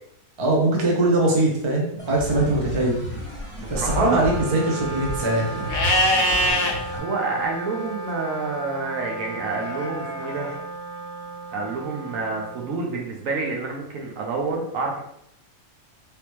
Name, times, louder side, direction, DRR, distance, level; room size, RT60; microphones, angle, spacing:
voice 1, 0.4-3.0 3.7-5.7, right 2 dB, 30° right, -2 dB, 0.6 m, -21 dB
sound 1, 2.0-7.0, equal, 5° left, 1.0 m, -32 dB
voice 2, 3.6-4.6 6.9-10.5 11.5-15.0, right 3 dB, 70° right, 0 dB, 1.1 m, -28 dB
Wind instrument woodwind instrument, 3.7-13.3, right 2 dB, 75° left, 1.1 m, -35 dB
Livestock farm animals working animals, 5.7-6.7 9.6-10.5, left 1 dB, 50° left, 0.6 m, -23 dB
3.4 x 2.9 x 3.0 m, 0.74 s
omnidirectional pair, 1.5 m